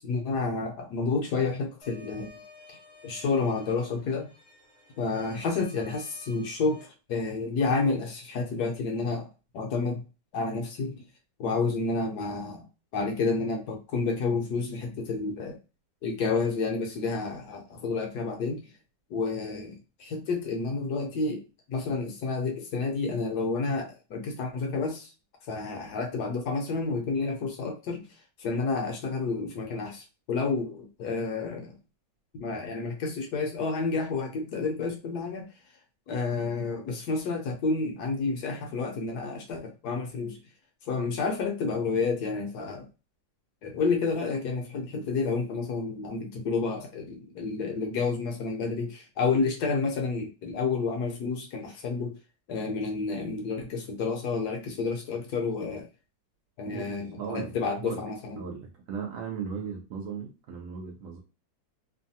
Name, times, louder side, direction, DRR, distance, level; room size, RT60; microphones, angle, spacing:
voice 1, 0.0-2.3 3.0-4.3 5.0-9.3 9.5-10.0 10.3-11.0 11.4-12.6 12.9-15.6 16.0-18.6 19.1-21.4 21.7-25.1 25.5-28.1 28.4-31.7 32.4-35.5 36.1-40.4 40.9-42.9 43.6-52.1 52.5-55.9 56.6-58.4, left 4 dB, 65° left, 2 dB, 1.1 m, -30 dB
sound 1, 1.8-6.8, left 2 dB, 25° left, 0.7 m, -53 dB
voice 2, 56.6-58.0 58.4-61.2, right 6 dB, 85° right, 0 dB, 0.7 m, -37 dB
3.1 x 2.2 x 2.7 m, 0.31 s
omnidirectional pair, 2.1 m